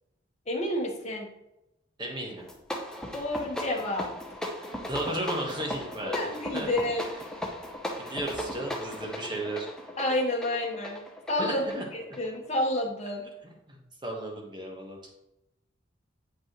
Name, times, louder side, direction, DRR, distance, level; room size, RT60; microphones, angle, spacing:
voice 1, 0.5-1.3 3.1-4.1 6.0-7.1 10.0-11.0 11.3-11.6 11.9-13.3, left 1 dB, 35° left, -1 dB, 1.3 m, -29 dB
voice 2, 2.0-2.4 4.9-6.7 8.0-9.7 11.4-11.8 13.7-15.0, right 1 dB, 25° right, 0 dB, 1.3 m, -34 dB
sound 1, 2.4-12.7, equal, 5° left, 0.7 m, -37 dB
8.3 x 5.3 x 3.1 m, 0.88 s
head